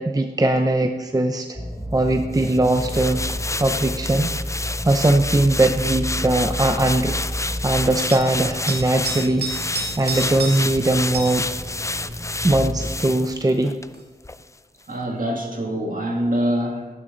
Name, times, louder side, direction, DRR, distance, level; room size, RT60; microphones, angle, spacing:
voice 1, 0.0-1.6 1.9-3.3 3.6-4.3 4.8-7.2 7.6-11.5 12.4-13.7, right 2 dB, 20° right, 6 dB, 0.6 m, -20 dB
sound 1, 1.5-13.0, equal, 5° right, 1.8 m, -32 dB
sound 2, 2.3-13.9 14.2-14.4, left 2 dB, 20° left, 0.4 m, -29 dB
sound 3, 8.1-8.3 8.7-10.8 11.1-11.4 13.9-14.0, right 3 dB, 70° right, 2.1 m, -31 dB
voice 2, 14.9-16.9, equal, 55° right, 1 dB, 2.0 m, -25 dB
12.0 x 11.0 x 3.9 m, 1.3 s
wide cardioid pair, 65°, 17 cm